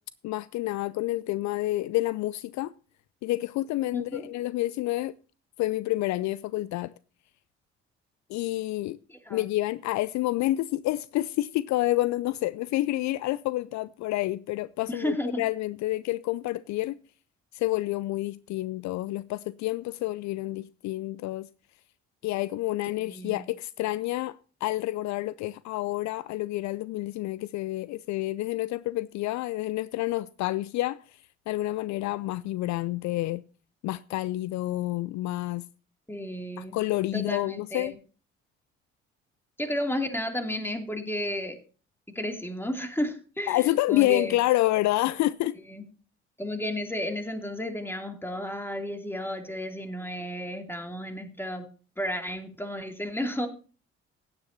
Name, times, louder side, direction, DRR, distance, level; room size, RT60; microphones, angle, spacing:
voice 1, 0.2-2.7 3.2-5.1 5.6-6.9 8.3-9.0 9.3-17.0 17.5-21.5 22.2-33.4 33.8-35.6 36.6-37.9 43.5-45.6, left 17 dB, 60° left, 0.5 m, -29 dB
voice 2, 3.9-4.3 9.1-9.4 14.9-15.4 23.1-23.4 36.1-36.8 37.1-38.0 39.6-41.6 42.1-44.4 45.7-45.8 46.4-51.7 52.0-53.5, left 1 dB, 5° left, 2.8 m, -32 dB
16.5 x 9.9 x 2.8 m
hypercardioid pair, 50°, 33 cm